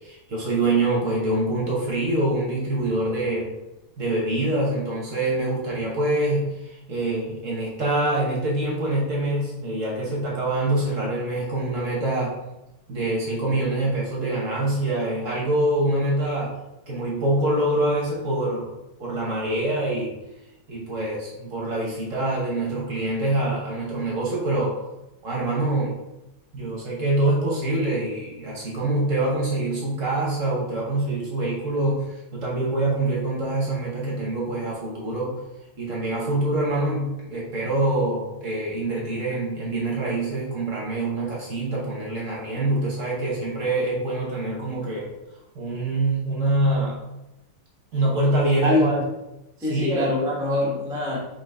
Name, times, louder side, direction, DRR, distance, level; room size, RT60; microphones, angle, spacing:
voice 1, 0.0-3.5 4.0-12.4 12.9-16.6 16.9-18.7 19.0-20.1 20.7-24.8 25.2-26.0 26.5-35.4 35.8-45.1 45.5-47.0 47.9-48.9 49.7-50.1, right 2 dB, 50° right, -4 dB, 1.1 m, -25 dB
voice 2, 48.6-49.0 49.6-51.2, left 1 dB, 5° right, -5 dB, 0.4 m, -23 dB
4.0 x 3.8 x 3.3 m, 0.92 s
omnidirectional pair, 2.2 m